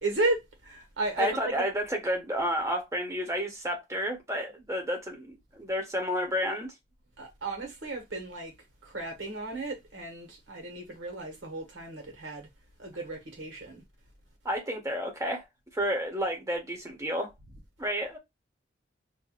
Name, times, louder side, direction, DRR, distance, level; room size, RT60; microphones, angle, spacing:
voice 1, 0.0-1.7 7.2-8.5 8.8-12.5 12.8-13.8, right 2 dB, 80° right, 1.5 m, -34 dB
voice 2, 1.2-6.7 14.4-15.4 15.7-17.3 17.8-18.2, equal, 15° right, 0.9 m, -31 dB
4.6 x 2.7 x 2.4 m
head